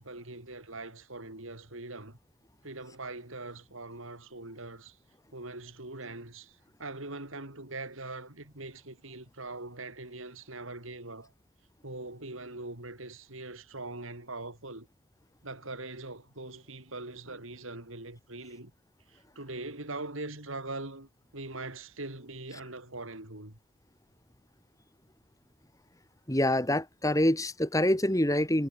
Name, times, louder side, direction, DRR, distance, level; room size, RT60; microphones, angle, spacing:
voice 1, 0.0-2.2 2.6-5.0 5.3-11.3 11.8-14.9 15.4-18.7 19.1-23.6, right 2 dB, 75° right, 5.1 m, -42 dB
voice 2, 26.3-28.7, left 1 dB, 15° left, 2.8 m, -26 dB
head